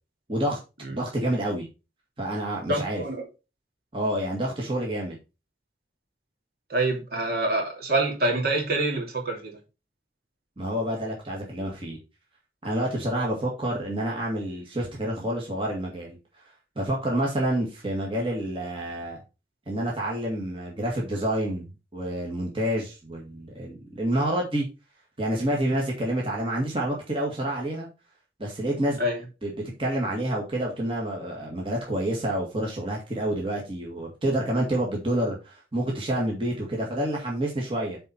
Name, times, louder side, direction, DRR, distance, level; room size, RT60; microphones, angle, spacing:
voice 1, 0.9-1.7 2.2-3.0 3.9-5.2 10.6-12.0 12.6-16.2 16.8-19.2 19.7-21.7 21.9-24.7 25.2-27.9 28.4-29.0 29.4-29.5 29.8-38.0, right 1 dB, 30° right, 2.0 m, -28 dB
voice 2, 2.7-3.2 6.7-9.5 29.0-29.2, right 2 dB, 60° right, 2.8 m, -26 dB
9.2 x 4.2 x 4.4 m
head